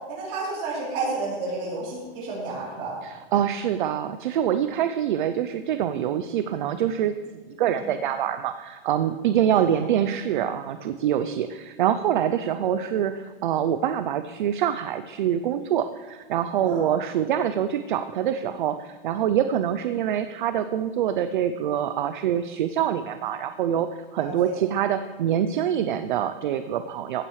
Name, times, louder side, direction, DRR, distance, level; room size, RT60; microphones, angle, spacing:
voice 1, 0.0-2.9 7.6-7.9 9.5-9.8 16.6-16.8 24.2-24.6, right 3 dB, 25° right, -5 dB, 3.4 m, -31 dB
voice 2, 3.0-27.2, right 10 dB, 55° right, 10 dB, 0.5 m, -25 dB
16.0 x 8.7 x 3.2 m, 1.3 s
supercardioid pair, 175°, 30 cm